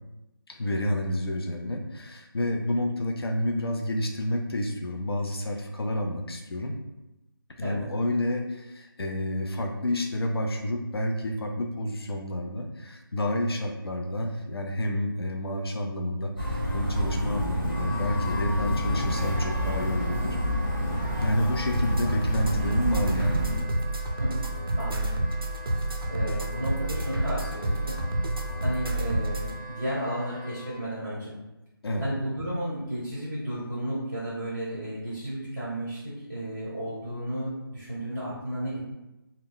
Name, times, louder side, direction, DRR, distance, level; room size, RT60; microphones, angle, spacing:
voice 1, 0.5-6.7 7.6-20.4 21.2-23.5 31.8-32.1, left 1 dB, 85° left, 3 dB, 0.5 m, -29 dB
sound 1, 16.4-23.6, equal, 60° left, 1.2 m, -28 dB
Wind instrument woodwind instrument, 17.6-30.8, left 1 dB, 20° left, 1.0 m, -42 dB
sound 2, 21.7-29.5, right 1 dB, 70° right, 0.5 m, -29 dB
voice 2, 24.7-25.2 26.1-28.0 28.6-31.4 32.0-38.8, right 1 dB, ahead, -26 dB, 0.4 m, -33 dB
2.2 x 2.1 x 3.8 m, 0.97 s
figure-of-eight pair, 175°, 13 cm